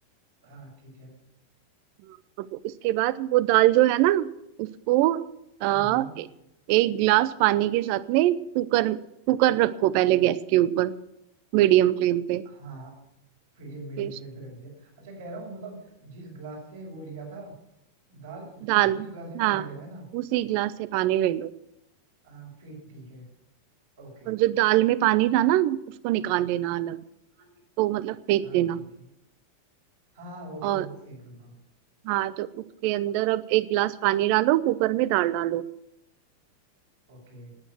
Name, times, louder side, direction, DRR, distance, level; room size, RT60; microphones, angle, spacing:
voice 1, 0.4-1.2 5.6-6.1 12.4-12.9 13.5-17.5 18.1-20.0 22.2-23.2 24.0-24.4 27.4-27.5 28.4-29.1 30.1-31.5 37.1-37.5, right 2 dB, 65° right, -4 dB, 6.0 m, -42 dB
voice 2, 2.4-4.3 4.6-5.2 5.6-6.3 6.7-9.0 9.3-10.9 11.5-12.4 14.0-14.1 18.7-19.1 19.4-19.6 20.1-21.5 24.3-27.0 27.8-28.8 30.6-30.8 32.0-35.6, right 15 dB, 45° right, 18 dB, 0.7 m, -23 dB
18.5 x 9.2 x 6.3 m, 0.83 s
figure-of-eight pair, 90°, 0 cm